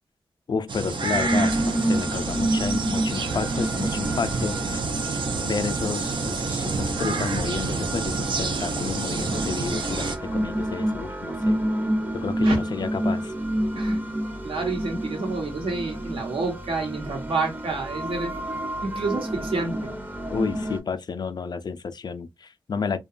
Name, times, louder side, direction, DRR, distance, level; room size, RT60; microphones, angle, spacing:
voice 1, 0.5-4.8 5.4-11.6 12.1-13.3 20.3-23.0, left 5 dB, 50° left, 0.3 m, -31 dB
sound 1, 0.7-10.2, right 4 dB, 65° right, 0.5 m, -28 dB
sound 2, 1.1-20.8, right 1 dB, 20° right, 0.6 m, -29 dB
sound 3, 11.3-19.5, right 1 dB, 35° right, 1.2 m, -41 dB
voice 2, 14.4-18.3 18.8-19.9, right 3 dB, 80° right, 1.0 m, -29 dB
2.8 x 2.2 x 2.3 m
wide cardioid pair, 80°, 9 cm